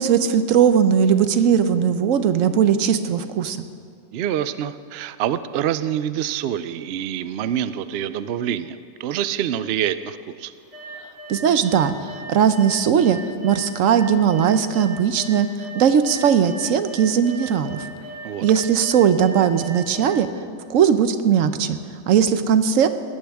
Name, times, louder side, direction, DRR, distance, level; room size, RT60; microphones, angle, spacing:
voice 1, 0.0-3.6 11.3-11.9 12.3-17.9 18.4-20.3 20.7-21.8 22.1-22.9, right 8 dB, 90° right, 11 dB, 1.1 m, -18 dB
voice 2, 4.1-10.5 18.2-18.4, right 10 dB, 65° right, 14 dB, 0.7 m, -26 dB
sound 1, 10.7-11.4 11.6-12.2 12.5-20.0, equal, 35° right, 3.4 m, -38 dB
20.0 x 14.5 x 3.5 m, 2.1 s
omnidirectional pair, 1.3 m